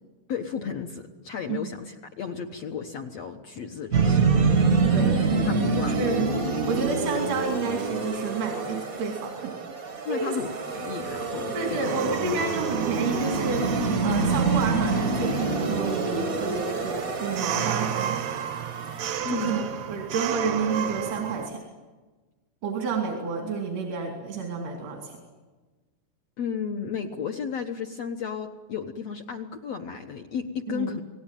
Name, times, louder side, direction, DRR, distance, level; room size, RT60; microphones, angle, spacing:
voice 1, 0.3-4.3 5.5-6.0 10.0-12.0 12.4-12.5 19.2-19.6 26.4-31.0, left 6 dB, 65° left, 3 dB, 1.6 m, -33 dB
sound 1, 3.9-19.2, right 4 dB, 50° right, 0.9 m, -26 dB
voice 2, 4.9-5.5 5.9-6.3 6.7-9.5 10.1-10.4 11.5-13.7 14.0-18.2 19.3-21.6 22.6-25.2 30.7-31.0, right 4 dB, 90° right, 1 dB, 4.9 m, -30 dB
sound 2, 11.8-21.5, right 9 dB, 70° right, 1.7 m, -34 dB
28.5 x 19.0 x 9.2 m, 1.3 s
omnidirectional pair, 4.5 m